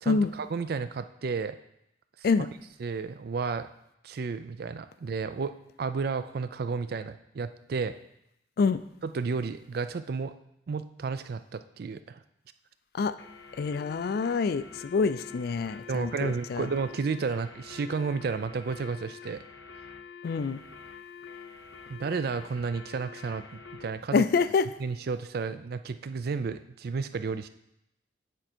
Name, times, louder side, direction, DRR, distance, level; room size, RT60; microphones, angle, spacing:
voice 1, 0.0-1.6 2.2-2.3 2.8-3.7 4.0-5.5 5.8-7.9 9.0-10.3 10.7-12.2 15.9-19.4 21.9-24.2 24.8-27.5, right 5 dB, 55° right, 11 dB, 0.4 m, -32 dB
sound 1, 13.2-23.9, left 6 dB, 85° left, 0.8 m, -47 dB
voice 2, 13.6-16.7 20.2-20.6 24.1-24.7, left 4 dB, 55° left, 14 dB, 0.3 m, -26 dB
9.0 x 4.6 x 4.3 m, 0.79 s
head